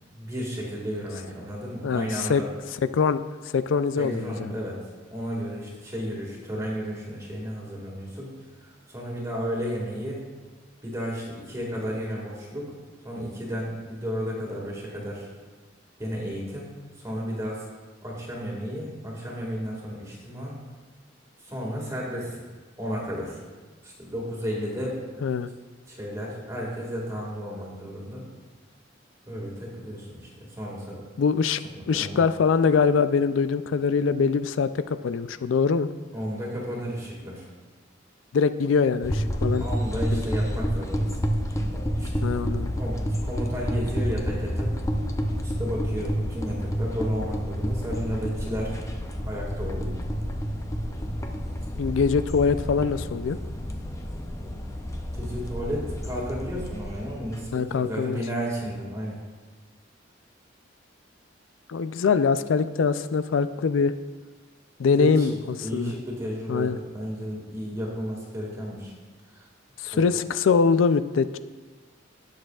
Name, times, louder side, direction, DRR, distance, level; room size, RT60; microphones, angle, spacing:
voice 1, 0.1-2.5 4.0-4.8 5.1-8.3 8.6-10.2 10.8-12.7 13.0-15.3 16.0-16.7 17.0-17.6 18.0-20.6 21.4-22.4 22.8-23.4 23.8-25.0 25.9-28.2 29.3-31.0 31.6-32.2 36.1-37.5 39.6-41.3 41.7-42.3 42.8-44.7 45.4-48.8 49.3-50.0 55.1-59.2 65.0-65.3 65.6-68.9 69.3-69.5 69.9-70.1, equal, 15° right, -3 dB, 1.9 m, -33 dB
voice 2, 1.8-2.4 2.8-3.2 3.5-4.5 25.2-25.5 31.2-31.6 31.9-35.9 38.3-39.6 40.1-40.2 42.2-42.7 51.8-53.4 57.5-58.2 61.7-63.9 64.8-65.3 65.7-65.9 66.5-66.8 69.8-71.4, left 5 dB, 80° left, 13 dB, 0.4 m, -23 dB
sound 1, 39.0-57.5, equal, 15° left, 0.6 m, -29 dB
19.0 x 6.5 x 2.4 m, 1.4 s
head